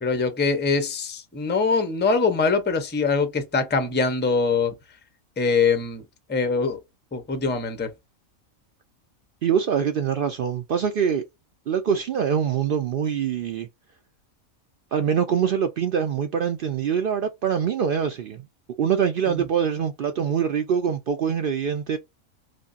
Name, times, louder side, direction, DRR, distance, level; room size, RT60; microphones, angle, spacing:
voice 1, 0.0-4.7 5.4-6.0 6.3-6.8 7.1-7.9 19.3-19.4, left 4 dB, 15° left, 0.3 m, -23 dB
voice 2, 9.4-11.2 11.7-13.7 14.9-18.4 18.8-22.0, right 7 dB, 75° right, 0.5 m, -24 dB
5.1 x 2.2 x 2.4 m
omnidirectional pair, 1.4 m